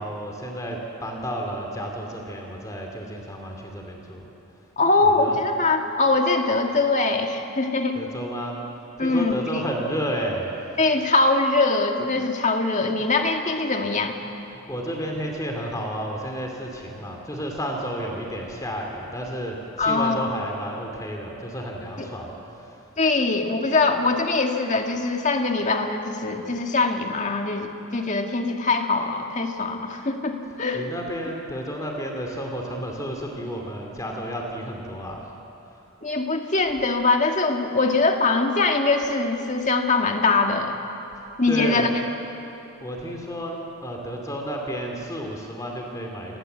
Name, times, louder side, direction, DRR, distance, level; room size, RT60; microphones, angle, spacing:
voice 1, 0.0-4.7 5.0-5.4 7.9-8.6 9.0-10.5 14.5-22.9 30.7-35.4 35.7-35.9 41.5-41.9 42.8-46.4, equal, 15° left, 1 dB, 2.6 m, -32 dB
voice 2, 4.8-8.0 9.0-9.6 10.8-14.2 19.8-20.3 22.0-22.1 23.0-30.9 36.0-40.8 41.4-41.9, left 3 dB, 35° left, 3 dB, 1.9 m, -22 dB
29.0 x 20.0 x 8.0 m, 2.9 s
head